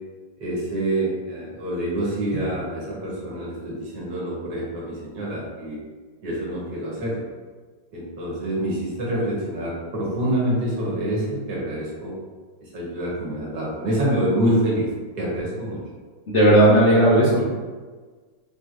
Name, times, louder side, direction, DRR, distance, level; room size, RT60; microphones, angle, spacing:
voice 1, 0.4-5.8 6.2-7.3 7.9-12.1 12.6-14.9 15.2-15.8, right 1 dB, 60° right, -5 dB, 1.6 m, -26 dB
voice 2, 16.3-17.4, right 1 dB, 80° left, -7 dB, 0.6 m, -15 dB
4.7 x 3.1 x 2.5 m, 1.4 s
omnidirectional pair, 2.2 m